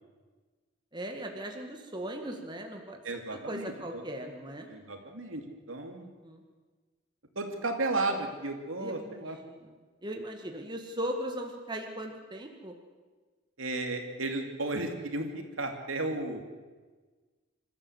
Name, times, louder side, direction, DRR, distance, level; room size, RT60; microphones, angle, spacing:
voice 1, 0.9-4.7 6.0-6.4 8.8-9.8 10.0-12.8, right 1 dB, 20° right, 3 dB, 2.0 m, -39 dB
voice 2, 3.0-4.0 4.7-5.4 5.7-6.1 7.3-9.4 13.6-16.4, right 2 dB, 80° right, 4 dB, 2.9 m, -34 dB
26.5 x 14.0 x 8.1 m, 1.4 s
head